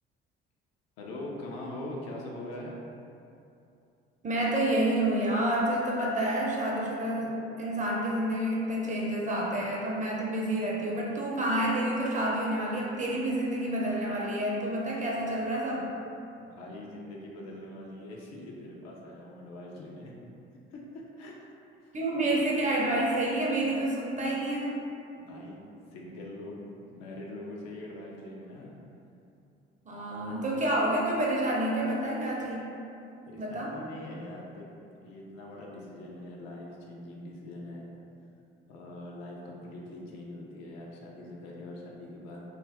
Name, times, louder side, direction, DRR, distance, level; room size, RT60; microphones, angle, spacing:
voice 1, 1.0-2.8 16.4-20.1 20.7-21.5 21.8-22.3 25.2-25.6 25.9-26.6 26.9-28.7 33.3-34.7 35.0-37.9 38.7-42.4, left 1 dB, 60° left, -2 dB, 0.6 m, -43 dB
voice 2, 4.2-15.9 21.9-24.8 29.9-32.6 33.4-33.7, right 1 dB, 25° right, -4 dB, 0.6 m, -29 dB
2.5 x 2.2 x 3.3 m, 2.7 s
hypercardioid pair, 50°, 30 cm